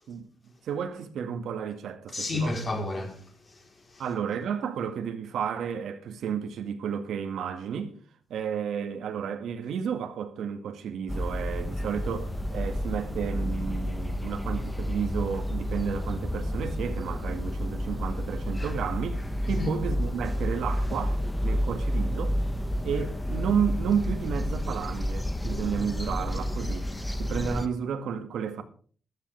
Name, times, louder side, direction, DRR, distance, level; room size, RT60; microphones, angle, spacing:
voice 1, 0.6-2.6 4.0-7.9 8.3-22.4 22.8-26.9 27.2-28.6, right 7 dB, 90° right, 2.0 m, -32 dB
voice 2, 2.1-4.0 19.4-19.7, left 2 dB, 30° left, 4.0 m, -32 dB
sound 1, 11.1-27.7, equal, 5° left, 0.9 m, -30 dB
14.0 x 13.5 x 3.5 m
wide cardioid pair, 170°, 0 cm